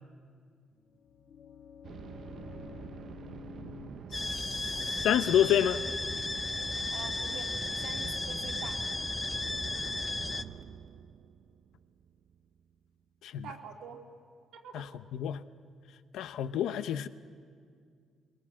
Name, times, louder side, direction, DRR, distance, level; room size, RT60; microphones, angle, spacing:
sound 1, 0.8-6.6, left 8 dB, 55° left, 1.4 m, -52 dB
sound 2, 1.8-12.6, right 7 dB, 50° right, 0.6 m, -46 dB
voice 1, 4.1-5.8 13.2-13.4 14.7-15.4 16.1-17.1, left 10 dB, 80° left, 0.8 m, -29 dB
sound 3, 4.1-10.4, left 2 dB, 15° left, 0.6 m, -34 dB
voice 2, 6.9-8.8 13.4-14.0 14.6-14.8, right 6 dB, 85° right, 3.1 m, -46 dB
22.0 x 22.0 x 7.5 m
cardioid pair, 125°, 0 cm